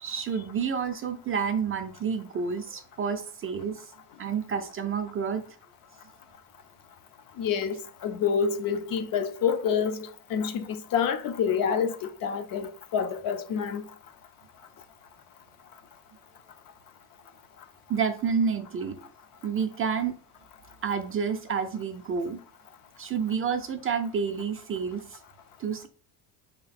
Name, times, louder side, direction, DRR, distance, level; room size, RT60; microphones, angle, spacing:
voice 1, 0.0-3.9 4.2-5.4 17.9-19.0 19.4-20.2 20.8-22.4 23.0-25.2 25.6-25.9, right 6 dB, 30° right, 0.4 m, -29 dB
voice 2, 7.4-13.8, left 7 dB, 50° left, 0.6 m, -28 dB
3.8 x 2.9 x 4.1 m
cardioid pair, 115°, 45 cm